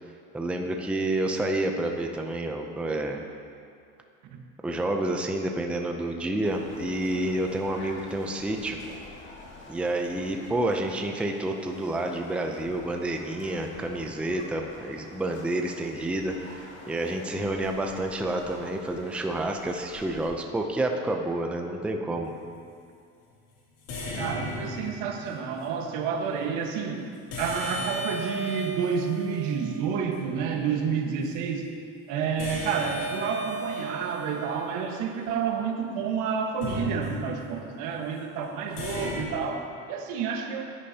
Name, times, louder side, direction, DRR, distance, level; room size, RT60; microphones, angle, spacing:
voice 1, 0.3-3.2 4.6-8.8 9.7-22.3, right 1 dB, 5° right, 3 dB, 0.5 m, -29 dB
sound 1, 6.4-20.3, left 2 dB, 35° left, 2.1 m, -47 dB
sound 2, 22.1-22.5 23.9-25.4 27.3-30.3 32.4-35.8 36.6-37.6 38.8-39.2, equal, 85° left, 2.8 m, -36 dB
voice 2, 24.2-27.1 27.4-31.7 32.1-40.7, right 6 dB, 75° right, 2 dB, 1.4 m, -29 dB
16.0 x 10.0 x 2.8 m, 2.4 s
cardioid pair, 145°, 31 cm